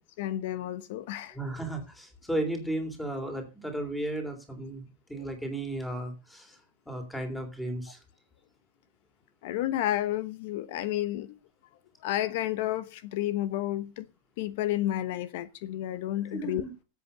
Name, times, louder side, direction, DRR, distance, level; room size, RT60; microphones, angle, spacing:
voice 1, 0.2-1.4 5.1-5.3 9.4-11.3 12.0-14.1 14.4-16.6, left 13 dB, 60° left, 1.0 m, -31 dB
voice 2, 1.3-6.6 6.8-8.0 16.3-16.7, right 1 dB, 5° left, 3.3 m, -34 dB
12.5 x 8.3 x 6.8 m
supercardioid pair, 160°, 0 cm